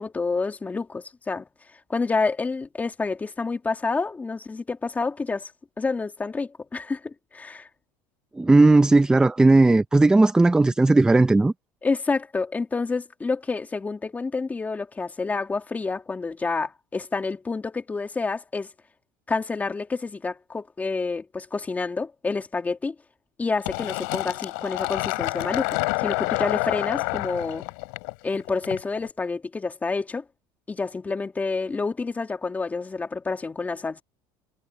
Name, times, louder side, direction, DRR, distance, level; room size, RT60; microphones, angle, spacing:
voice 1, 0.0-1.5 1.9-5.5 5.8-7.7 11.8-18.7 19.3-22.9 23.4-27.6 28.2-30.2 30.7-34.0, left 4 dB, 15° left, 2.3 m, -28 dB
voice 2, 8.4-11.5, right 2 dB, 10° right, 0.5 m, -16 dB
Fill (with liquid), 23.7-29.1, left 30 dB, 90° left, 4.6 m, -28 dB
cardioid pair, 140°, 10 cm